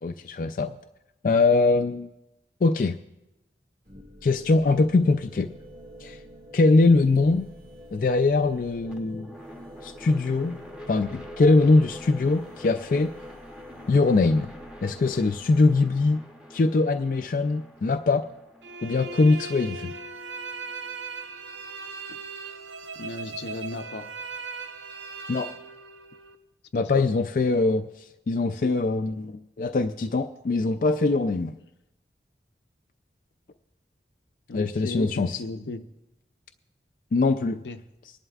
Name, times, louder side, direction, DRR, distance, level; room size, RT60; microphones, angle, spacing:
voice 1, 0.0-0.8 1.2-2.1 2.6-3.0 4.2-5.5 6.0-6.2 6.5-7.5 7.9-9.3 9.8-10.6 10.9-13.1 13.9-14.5 14.8-16.2 16.5-18.2 18.8-19.9 25.3-25.5 26.7-27.9 28.3-31.6 34.5-35.4 37.1-37.6, left 3 dB, 50° left, 6 dB, 0.3 m, -22 dB
sound 1, 3.9-15.8, equal, 45° right, 2.1 m, -47 dB
sound 2, 8.8-20.9, equal, 5° right, 0.8 m, -46 dB
sound 3, 18.6-26.4, right 4 dB, 90° right, 0.7 m, -38 dB
voice 2, 23.0-24.1 26.7-27.1 28.5-28.7 34.5-35.8 37.5-37.8, left 3 dB, 80° left, 7 dB, 0.7 m, -36 dB
24.5 x 11.0 x 2.4 m, 0.92 s
head